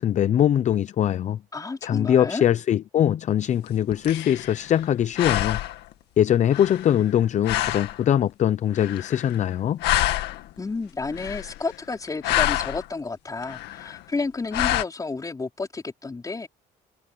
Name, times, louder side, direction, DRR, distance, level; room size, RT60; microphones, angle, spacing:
voice 1, 0.0-1.4 1.8-5.6 6.2-9.8, left 10 dB, 45° left, 0.6 m, -22 dB
voice 2, 1.5-2.5 10.6-16.5, left 3 dB, 20° left, 4.6 m, -31 dB
sound 1, 3.7-4.9 5.2-5.9 6.5-7.2 7.4-8.0 8.7-9.5 9.8-10.6 11.0-11.8 12.1-12.9 13.4-14.0 14.5-14.8, left 15 dB, 85° left, 2.0 m, -27 dB
cardioid pair, 110°, 17 cm